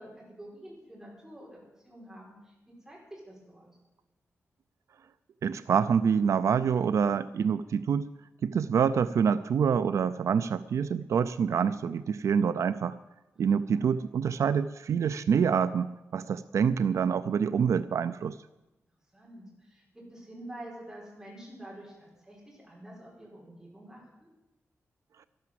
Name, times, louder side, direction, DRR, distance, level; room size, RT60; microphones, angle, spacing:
voice 1, 0.0-3.7 13.7-13.9 19.1-24.3, right 1 dB, 10° right, -4 dB, 4.7 m, -48 dB
voice 2, 5.4-8.1 8.4-12.9 13.4-18.4, right 7 dB, 75° right, 13 dB, 0.4 m, -26 dB
12.0 x 12.0 x 7.5 m, 1.0 s
wide cardioid pair, 180°, 5 cm